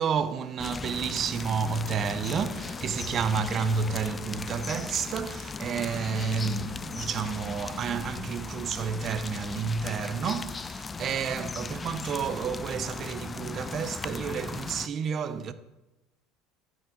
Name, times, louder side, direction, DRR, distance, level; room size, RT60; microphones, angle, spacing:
voice 1, 0.0-15.5, right 6 dB, 40° right, 0.6 m, -30 dB
sound 1, 0.6-14.9, left 4 dB, 25° left, 0.3 m, -37 dB
sound 2, 1.8-7.5, left 3 dB, 60° left, 1.4 m, -50 dB
13.5 x 4.9 x 3.8 m
supercardioid pair, 95°, 0 cm